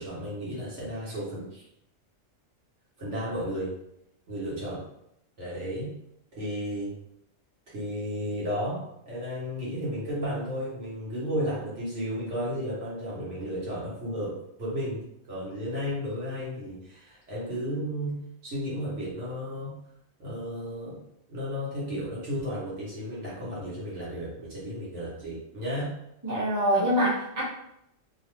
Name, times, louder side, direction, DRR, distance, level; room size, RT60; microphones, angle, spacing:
voice 1, 0.0-1.6 3.0-3.7 4.3-4.8 5.4-5.9 6.4-6.9 7.7-19.8 20.2-21.0 21.3-25.9, equal, 65° right, -7 dB, 1.4 m, -33 dB
voice 2, 26.2-27.4, equal, 15° right, -9 dB, 0.9 m, -24 dB
3.0 x 2.1 x 3.1 m, 0.79 s
omnidirectional pair, 1.4 m